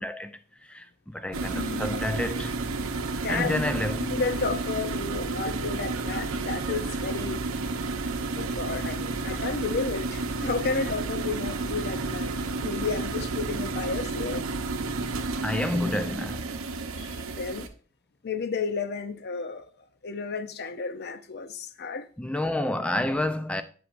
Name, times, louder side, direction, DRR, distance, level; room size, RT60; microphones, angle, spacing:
voice 1, 0.0-2.5 3.3-4.1 15.4-16.5 22.2-23.6, left 1 dB, 5° left, 0.4 m, -29 dB
sound 1, 1.3-17.7, right 3 dB, 70° right, 0.8 m, -31 dB
voice 2, 1.5-2.0 3.1-3.7 4.0-7.4 8.3-14.5 16.9-17.7 18.2-19.7 20.0-22.1, left 4 dB, 50° left, 0.6 m, -32 dB
8.0 x 7.4 x 2.5 m
head